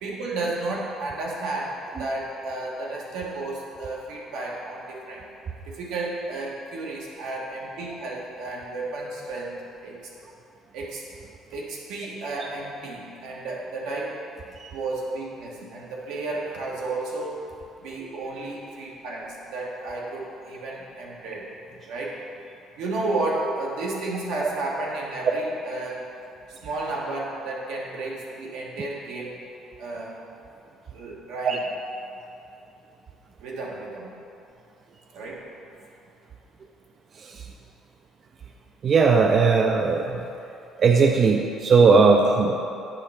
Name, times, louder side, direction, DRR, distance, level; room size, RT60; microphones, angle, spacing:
voice 1, 0.0-5.2 5.7-10.0 10.7-11.0 11.5-14.2 14.7-17.4 17.8-21.5 21.9-22.2 22.8-26.0 26.6-29.4 29.8-30.1 30.9-31.6 33.4-34.1 35.1-35.4, right 2 dB, 85° right, -3 dB, 1.3 m, -32 dB
voice 2, 38.8-40.2 40.8-42.6, right 4 dB, 40° right, 3 dB, 0.3 m, -18 dB
8.6 x 3.2 x 5.6 m, 2.7 s
cardioid pair, 135°, 0 cm